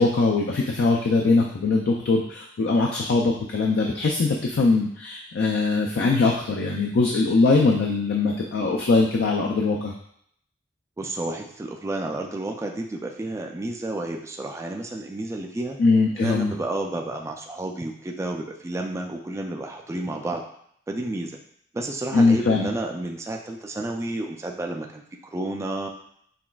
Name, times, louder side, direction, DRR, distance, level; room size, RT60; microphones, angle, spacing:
voice 1, 0.0-9.9 15.8-16.5 22.1-22.7, left 3 dB, 65° left, 0 dB, 0.4 m, -21 dB
voice 2, 11.0-15.8 16.2-20.4 20.9-21.4 21.7-25.9, right 2 dB, 15° right, 2 dB, 0.3 m, -31 dB
5.7 x 2.4 x 2.3 m, 0.68 s
head